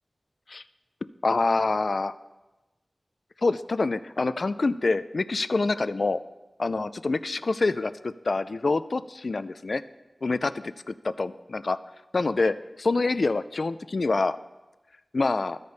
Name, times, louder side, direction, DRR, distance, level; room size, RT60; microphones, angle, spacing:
voice 1, 1.2-2.2 3.4-6.2 6.6-9.8 10.2-10.5 11.0-11.8 12.1-14.4 15.1-15.6, left 3 dB, 65° left, 13 dB, 0.3 m, -26 dB
14.5 x 5.1 x 4.0 m, 1.1 s
wide cardioid pair, 80°, 0 cm